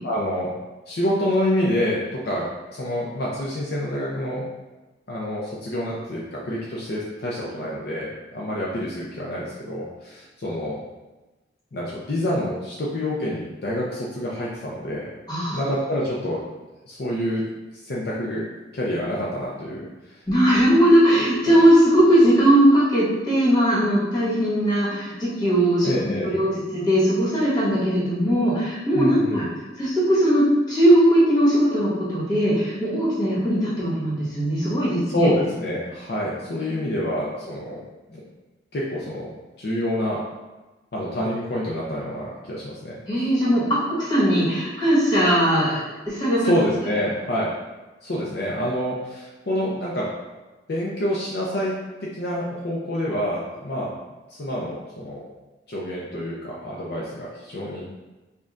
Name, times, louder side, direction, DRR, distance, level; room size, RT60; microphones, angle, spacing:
voice 1, 0.0-0.6 0.9-4.5 5.1-10.8 11.7-15.1 15.5-16.4 16.9-17.4 17.8-18.4 18.7-19.9 21.5-21.6 25.8-26.4 28.9-29.4 35.1-37.8 38.1-38.2 38.7-39.3 39.6-40.2 40.9-43.0 46.4-47.5 48.0-50.1 50.7-51.7 52.0-53.9 54.3-55.2 55.7-57.8, left 1 dB, 55° left, -5 dB, 0.5 m, -27 dB
voice 2, 15.3-15.6 20.3-25.9 26.2-29.5 29.8-35.3 36.6-36.9 43.1-45.8 46.1-46.5, equal, 20° left, -9 dB, 1.3 m, -19 dB
5.1 x 2.3 x 2.4 m, 1.1 s
head